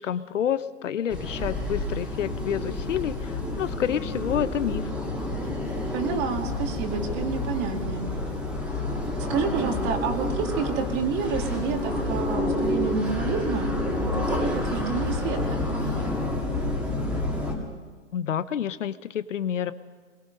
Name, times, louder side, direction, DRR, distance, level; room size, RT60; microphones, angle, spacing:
voice 1, 0.0-4.9 18.1-19.7, left 9 dB, 70° left, 13 dB, 1.1 m, -29 dB
sound 1, 1.1-17.5, left 1 dB, 5° right, 2.8 m, -29 dB
voice 2, 5.9-8.0 9.2-16.1, right 5 dB, 25° right, 3 dB, 2.5 m, -29 dB
27.0 x 22.0 x 5.4 m, 1.4 s
hypercardioid pair, 150°, 38 cm